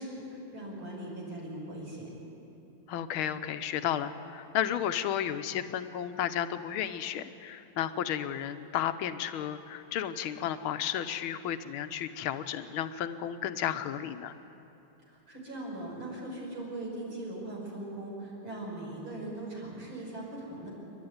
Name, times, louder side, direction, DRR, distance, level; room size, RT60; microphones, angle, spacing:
voice 1, 0.0-2.1 15.1-20.7, right 1 dB, 75° right, -3 dB, 6.4 m, -40 dB
voice 2, 2.9-14.3, left 10 dB, 80° left, 10 dB, 1.7 m, -33 dB
28.5 x 12.0 x 9.5 m, 2.9 s
omnidirectional pair, 2.3 m